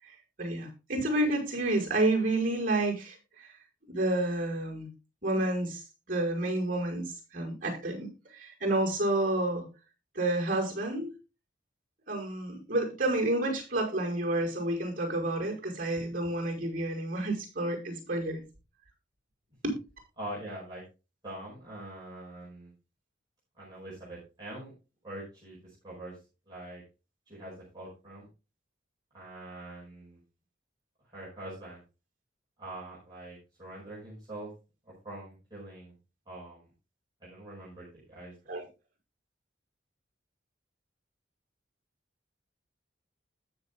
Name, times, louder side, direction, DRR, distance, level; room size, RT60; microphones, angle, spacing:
voice 1, 0.0-3.5 3.9-4.9 5.2-9.6 10.2-11.1 12.1-18.4 19.6-19.7 38.5-38.6, right 2 dB, 45° right, 0 dB, 5.3 m, -30 dB
voice 2, 20.2-20.8 21.2-22.7 23.6-24.7 25.0-26.2 26.5-26.8 27.3-28.3 29.1-30.2 31.0-31.8 32.6-34.5 34.8-35.9 36.3-36.7 37.2-38.3, right 1 dB, 20° right, -6 dB, 5.1 m, -44 dB
20.0 x 6.8 x 2.3 m, 0.29 s
head